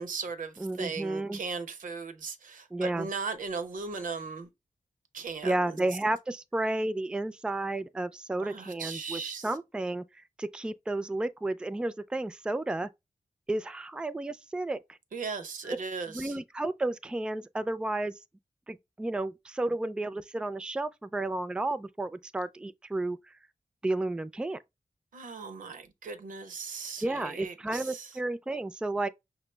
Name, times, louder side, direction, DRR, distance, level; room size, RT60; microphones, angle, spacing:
voice 1, 0.0-4.5 5.1-5.8 8.4-9.5 15.1-16.4 25.1-28.2, right 4 dB, 90° right, 0.8 m, -38 dB
voice 2, 0.6-1.4 2.7-3.1 5.4-12.9 13.5-15.0 15.6-15.8 16.1-18.1 18.7-23.3 23.8-24.6 27.0-29.1, right 2 dB, 5° right, 0.3 m, -32 dB
5.8 x 2.0 x 3.2 m
wide cardioid pair, 85°, 13 cm